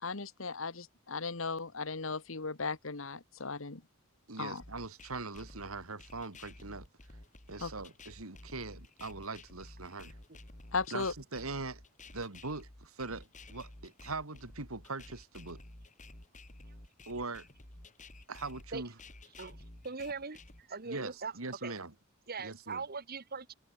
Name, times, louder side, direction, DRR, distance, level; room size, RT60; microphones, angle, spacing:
voice 1, 0.0-3.8 4.4-4.6 7.6-7.7 10.7-11.1, left 4 dB, 65° left, 1.6 m, -36 dB
voice 2, 4.3-6.9 7.5-10.1 10.9-11.8 12.1-15.6 17.1-17.5 18.3-19.0 20.8-21.9 22.4-22.8, right 3 dB, 90° right, 2.7 m, -41 dB
sound 1, 4.6-20.6, left 2 dB, 35° left, 3.3 m, -52 dB
voice 3, 19.8-20.4 20.7-21.3 21.6-21.7 22.3-23.5, right 4 dB, 45° right, 1.7 m, -40 dB
head